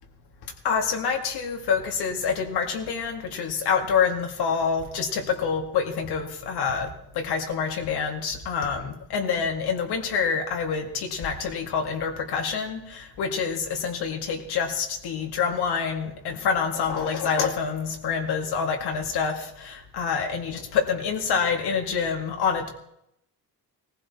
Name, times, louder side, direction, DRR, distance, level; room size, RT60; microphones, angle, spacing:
voice 1, 0.6-22.7, left 6 dB, 80° left, 3 dB, 2.2 m, -27 dB
18.5 x 15.0 x 4.3 m, 0.78 s
cardioid pair, 145°, 39 cm